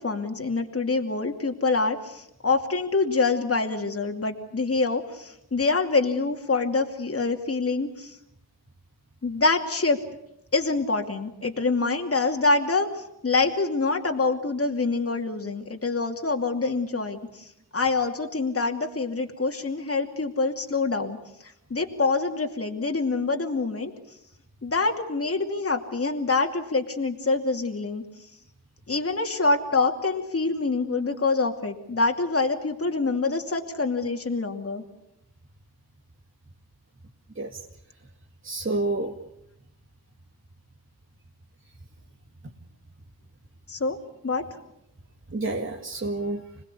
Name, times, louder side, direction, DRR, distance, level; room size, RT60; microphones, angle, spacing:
voice 1, 0.0-8.1 9.2-10.0 10.5-17.5 17.7-21.2 21.7-23.9 24.6-28.0 28.9-34.8 43.7-44.0 44.2-44.4, left 3 dB, 35° left, 3 dB, 2.6 m, -25 dB
voice 2, 38.4-39.1 45.3-46.4, right 2 dB, 30° right, 0 dB, 2.2 m, -29 dB
26.5 x 19.5 x 8.4 m, 0.82 s
cardioid pair, 75°, 38 cm